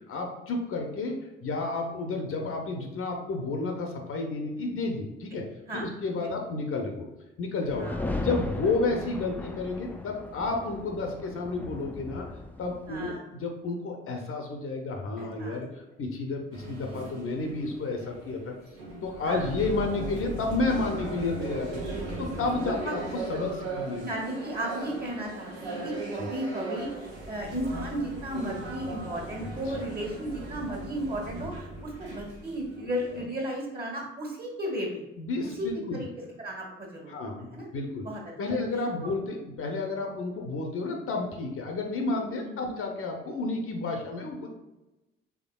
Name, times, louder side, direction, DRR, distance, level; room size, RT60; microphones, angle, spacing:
voice 1, 0.1-5.4 5.7-7.1 7.4-12.3 12.6-18.5 19.0-21.8 22.2-24.0 26.2-26.3 29.7-29.9 35.2-36.0 37.1-37.5 37.7-38.0 38.4-44.5, left 3 dB, 50° left, 2 dB, 0.7 m, -31 dB
sound 1, 7.7-13.1, left 2 dB, 5° left, 0.4 m, -36 dB
voice 2, 12.9-13.2 15.2-15.6 19.2-19.5 21.9-22.9 24.0-35.0 35.4-36.1 36.4-37.1 37.5-37.7 38.0-38.2 38.5-38.6 40.3-40.4 42.4-42.7, right 1 dB, 30° right, 0 dB, 1.4 m, -35 dB
sound 2, 16.5-33.3, right 2 dB, 85° right, 0.7 m, -38 dB
3.6 x 3.4 x 2.3 m, 1.0 s
figure-of-eight pair, 40°, 29 cm